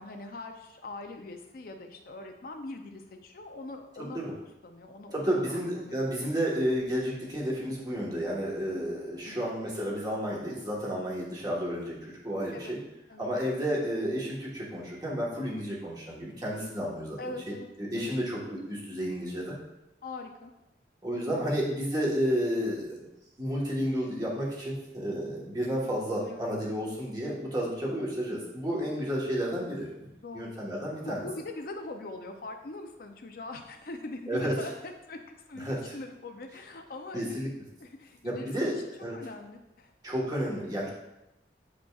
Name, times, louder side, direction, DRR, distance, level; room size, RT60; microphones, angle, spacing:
voice 1, 0.0-4.2 4.6-6.0 8.7-9.0 9.3-9.5 12.5-12.8 13.1-13.3 17.2-17.7 18.0-18.2 20.0-20.5 26.3-26.5 28.7-29.1 30.2-30.5 31.0-37.5 37.8-38.5 39.1-39.9, left 2 dB, 55° left, 4 dB, 0.5 m, -42 dB
voice 2, 4.0-4.3 5.1-12.8 13.2-17.2 17.8-19.6 21.0-23.1 23.4-29.9 30.3-31.3 34.3-34.6 35.6-35.9 37.1-37.5 38.2-38.7 39.0-39.2 40.0-40.9, equal, 20° right, -4 dB, 1.3 m, -31 dB
8.0 x 5.1 x 2.4 m, 0.91 s
head